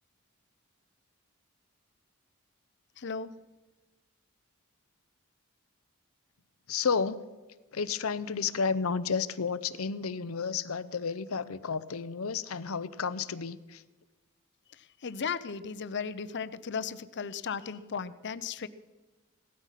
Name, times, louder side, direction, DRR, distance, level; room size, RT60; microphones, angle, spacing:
voice 1, 3.0-3.3 14.7-18.7, left 6 dB, 55° left, 14 dB, 0.7 m, -36 dB
voice 2, 6.7-7.2 7.7-13.8, left 5 dB, 90° left, 15 dB, 0.7 m, -31 dB
17.0 x 13.0 x 5.8 m, 1.2 s
head